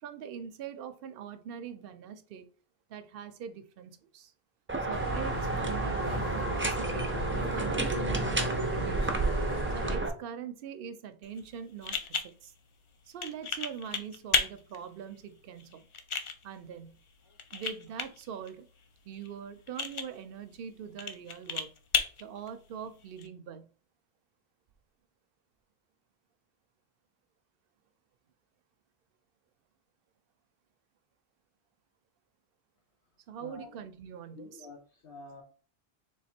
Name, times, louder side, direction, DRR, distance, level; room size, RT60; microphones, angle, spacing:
voice 1, 0.0-2.5 2.9-4.3 4.8-9.2 9.7-12.5 13.1-15.9 16.4-17.0 17.5-18.7 19.0-21.7 22.2-23.7 33.3-34.7, right 8 dB, 65° right, 0.7 m, -43 dB
sound 1, 4.7-10.1, right 2 dB, 20° right, 0.4 m, -31 dB
sound 2, 4.9-10.0, right 1 dB, 25° left, 0.8 m, -35 dB
sound 3, 11.2-23.3, left 4 dB, 50° left, 0.4 m, -36 dB
voice 2, 33.4-33.8 34.3-35.4, left 3 dB, 70° left, 1.1 m, -48 dB
3.4 x 3.1 x 4.2 m
omnidirectional pair, 1.1 m